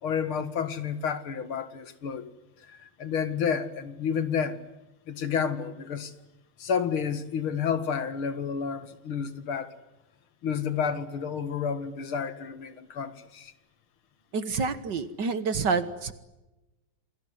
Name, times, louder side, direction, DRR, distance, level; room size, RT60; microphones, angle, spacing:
voice 1, 0.0-2.3 2.7-4.6 5.1-6.1 6.6-9.7 10.4-13.5, left 7 dB, 70° left, 2.6 m, -30 dB
voice 2, 14.3-16.1, right 4 dB, 55° right, 1.9 m, -28 dB
28.5 x 20.5 x 9.6 m
omnidirectional pair, 2.4 m